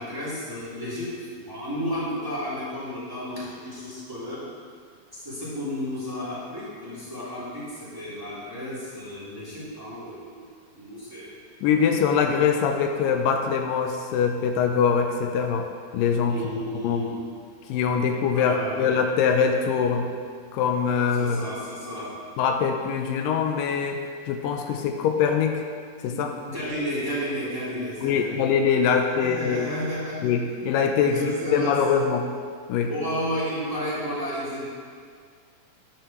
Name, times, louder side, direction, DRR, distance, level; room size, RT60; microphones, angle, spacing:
voice 1, 0.0-4.4 5.1-10.4 10.7-11.4 16.3-17.1 18.3-18.9 21.2-22.1 26.1-28.5 29.1-30.3 31.1-31.8 32.9-34.7, equal, 5° right, -10 dB, 2.6 m, -32 dB
voice 2, 11.6-15.7 15.9-16.4 16.8-17.0 17.7-20.1 20.5-21.4 22.4-25.6 26.0-26.3 28.0-29.7 30.2-32.3 32.7-32.9, left 6 dB, 85° left, 4 dB, 2.3 m, -23 dB
12.5 x 10.0 x 3.1 m, 2.1 s
omnidirectional pair, 4.0 m